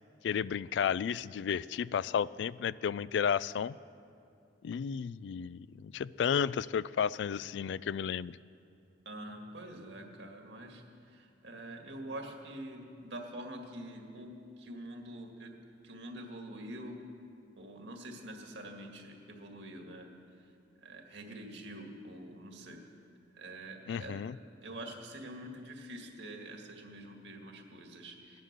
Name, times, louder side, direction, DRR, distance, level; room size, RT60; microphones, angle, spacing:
voice 1, 0.2-3.8 4.6-8.4 23.9-24.4, left 7 dB, 70° left, 20 dB, 0.3 m, -32 dB
voice 2, 9.1-15.5 15.8-17.0 17.6-20.1 20.8-22.8 23.4-24.2 24.6-28.4, right 1 dB, 80° right, 3 dB, 1.9 m, -46 dB
17.0 x 11.0 x 6.7 m, 2.5 s
head